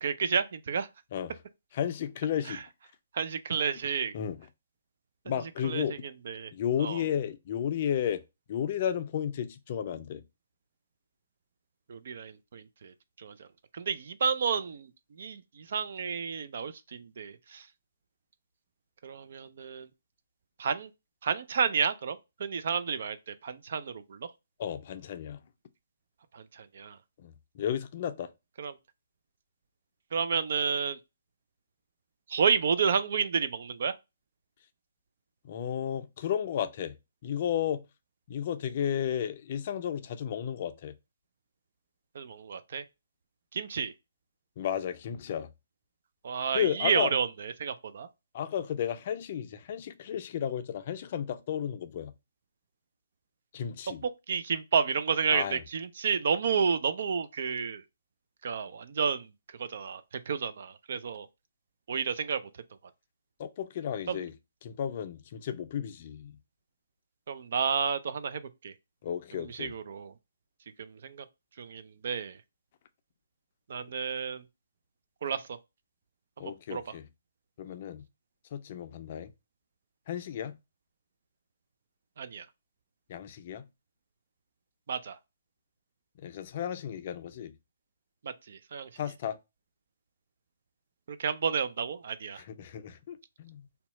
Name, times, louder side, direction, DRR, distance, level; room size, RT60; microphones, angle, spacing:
voice 1, 0.0-0.9 2.5-2.6 3.1-4.1 5.6-6.0 6.3-6.5 6.8-7.0 11.9-13.5 13.7-14.9 15.2-17.7 19.0-19.9 20.6-20.9 21.2-24.3 26.3-27.0 28.6-28.8 30.1-31.0 32.3-34.0 42.1-42.8 43.5-43.9 46.2-48.1 54.0-57.8 58.4-59.3 59.6-61.3 61.9-62.4 64.1-64.2 67.3-68.7 69.4-70.1 70.8-71.3 71.6-72.4 73.7-74.4 75.2-75.6 76.4-76.8 82.2-82.5 84.9-85.2 88.2-88.9 91.1-92.4, right 6 dB, 55° right, 0.4 m, -31 dB
voice 2, 1.7-2.6 4.1-4.4 5.3-6.0 6.5-8.2 8.5-10.2 24.6-25.4 27.2-28.3 35.4-36.9 37.2-37.8 38.3-40.9 44.6-45.5 46.5-47.1 48.3-52.1 53.5-54.0 55.3-55.6 63.4-64.3 64.6-66.4 69.0-69.7 76.4-77.0 77.6-78.0 78.5-79.3 80.1-80.5 83.1-83.6 86.2-87.5 89.0-89.4 92.4-93.7, left 9 dB, 45° left, 0.4 m, -33 dB
2.8 x 2.3 x 3.9 m
figure-of-eight pair, 135°, 0 cm